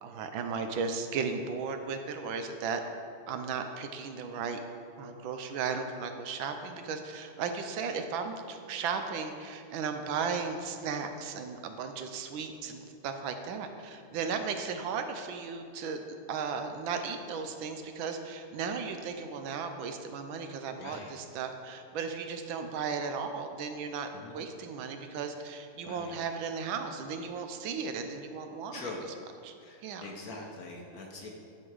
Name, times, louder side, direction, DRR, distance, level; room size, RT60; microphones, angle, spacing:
voice 1, 0.0-2.8 3.3-4.6 5.0-16.0 16.3-28.9 29.4-29.5 29.8-30.1, right 5 dB, 80° right, 7 dB, 1.4 m, -35 dB
voice 2, 20.8-21.1 24.1-24.4 25.8-26.1 28.7-29.0 29.6-31.3, left 3 dB, 60° left, 0 dB, 1.1 m, -43 dB
11.0 x 3.8 x 4.7 m, 2.5 s
omnidirectional pair, 2.1 m